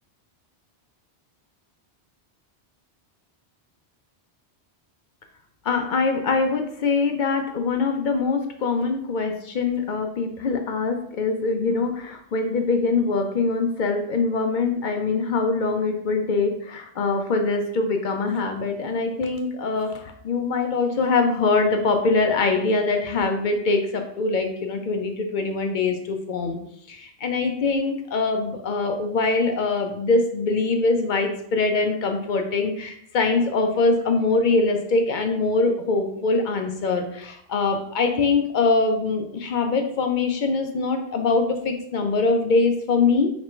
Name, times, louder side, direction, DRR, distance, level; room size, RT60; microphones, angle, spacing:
voice 1, 5.7-26.6 26.9-43.3, left 3 dB, 55° left, 5 dB, 0.6 m, -23 dB
3.2 x 2.9 x 4.4 m, 0.69 s
omnidirectional pair, 1.1 m